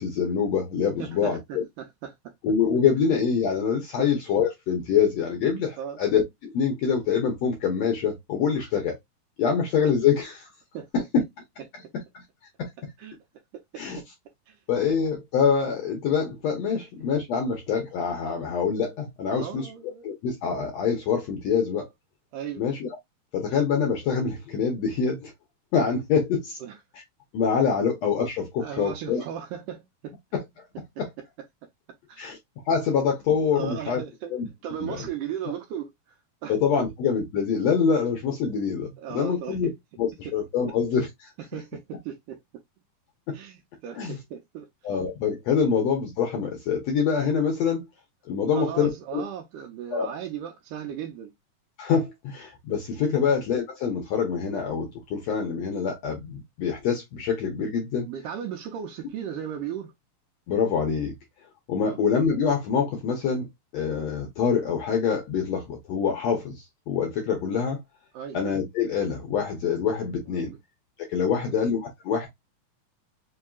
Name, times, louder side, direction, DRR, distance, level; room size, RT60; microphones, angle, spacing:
voice 1, 0.0-1.6 2.4-9.0 9.4-10.5 10.9-11.0 11.9-12.2 12.6-12.7 13.8-14.0 14.7-19.7 20.0-21.9 22.6-22.9 23.3-25.3 25.7-26.6 27.3-29.2 30.3-30.4 31.0-31.1 32.2-32.4 32.7-34.0 34.3-34.5 34.8-35.0 36.5-39.7 40.0-41.3 43.3-43.4 43.9-44.2 44.8-47.9 48.3-49.2 49.9-50.1 51.8-58.1 60.5-61.1 61.7-63.5 63.7-67.8 68.3-70.5 71.0-72.3, left 6 dB, 70° left, 1.6 m, -25 dB
voice 2, 1.0-2.3 4.0-4.1 5.8-6.0 8.6-8.7 10.7-10.9 13.0-13.2 13.5-14.1 14.5-14.6 19.3-20.1 22.3-22.6 26.6-26.7 27.8-27.9 28.6-30.2 32.1-32.3 33.5-34.3 34.6-35.9 36.4-36.6 39.0-39.7 41.5-42.4 43.3-44.7 48.5-51.3 53.2-53.3 58.0-59.9 61.8-62.0 68.1-68.4 70.3-70.6 71.2-71.6, right 9 dB, 75° right, 2.1 m, -36 dB
5.4 x 2.7 x 2.3 m
omnidirectional pair, 4.0 m